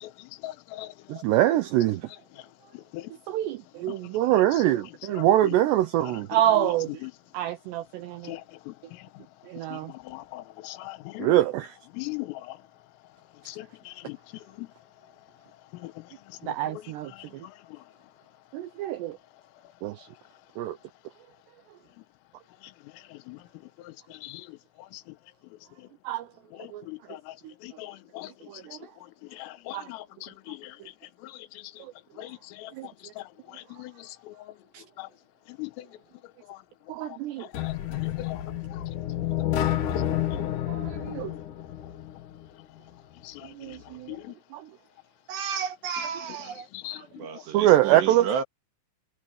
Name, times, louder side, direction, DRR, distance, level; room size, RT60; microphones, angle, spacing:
voice 1, 0.0-0.9 2.7-3.1 3.9-4.0 5.1-5.3 6.3-6.7 7.0-7.1 8.2-9.2 9.7-11.3 11.9-12.6 13.5-14.2 14.6-14.7 15.7-16.0 16.4-17.8 23.1-23.4 23.8-24.6 24.9-25.0 26.5-27.4 27.6-28.3 28.8-28.9 29.3-30.8 31.2-31.8 32.2-34.4 35.0-35.1 35.5-35.9 36.5-36.6 37.1-38.8 39.6-39.9 40.3-40.4 43.2-43.8 44.1-44.4 46.7-47.4, left 18 dB, 90° left, 3.7 m, -41 dB
voice 2, 1.1-2.0 3.3-6.9 7.3-8.3 9.5-9.9 11.2-11.7 16.5-17.1 18.5-19.2 19.8-20.0 20.6-20.8 26.1-26.2 26.7-26.8 28.7-28.8 29.7-29.9 32.8-32.9 34.7-34.8 36.9-37.5 40.7-41.3 43.6-44.1 44.5-44.6 47.5-48.3, right 14 dB, 80° right, 2.5 m, -24 dB
sound 1, 37.5-42.5, left 11 dB, 65° left, 2.0 m, -30 dB
voice 3, 45.3-46.7 47.2-48.4, right 7 dB, 65° right, 3.8 m, -32 dB
omnidirectional pair, 5.8 m